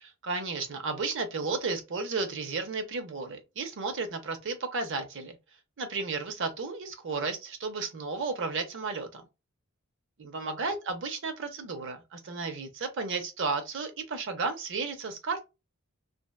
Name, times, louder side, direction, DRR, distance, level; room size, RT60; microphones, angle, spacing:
voice 1, 0.0-5.4 5.8-9.2 10.2-15.4, right 4 dB, 55° right, 0.6 m, -33 dB
2.7 x 2.1 x 2.2 m
head